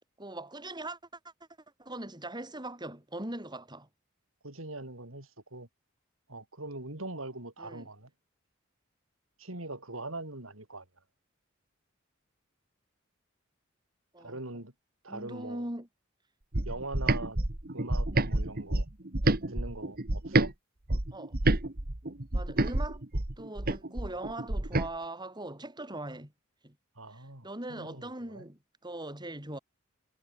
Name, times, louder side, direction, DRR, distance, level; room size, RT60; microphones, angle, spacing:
voice 1, 0.2-1.0 1.8-3.9 7.6-7.9 14.1-14.4 15.1-15.9 21.1-21.3 22.3-23.0 23.4-26.3 26.6-26.8 27.1-29.6, right 1 dB, 20° right, 7.9 m, -40 dB
voice 2, 4.4-5.7 6.3-8.1 9.4-10.8 14.2-14.7 15.0-15.7 16.6-17.4 17.7-18.9 19.5-20.5 27.0-28.4, right 2 dB, 80° right, 6.7 m, -42 dB
sound 1, 16.5-20.5 20.9-24.9, right 2 dB, 45° right, 1.8 m, -29 dB
head